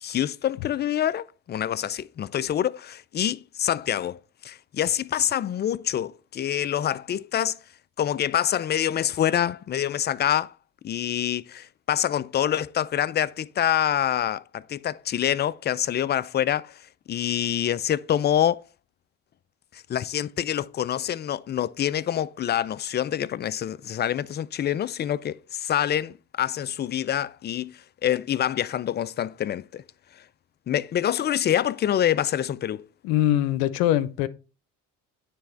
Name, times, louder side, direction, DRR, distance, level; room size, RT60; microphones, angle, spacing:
voice 1, 0.0-7.6 8.0-10.5 10.8-16.8 17.1-18.6 19.7-29.8 30.7-32.8, left 10 dB, 30° left, 0.4 m, -26 dB
voice 2, 33.0-34.3, left 12 dB, 85° left, 0.6 m, -22 dB
9.3 x 3.4 x 4.4 m
supercardioid pair, 75°, 36 cm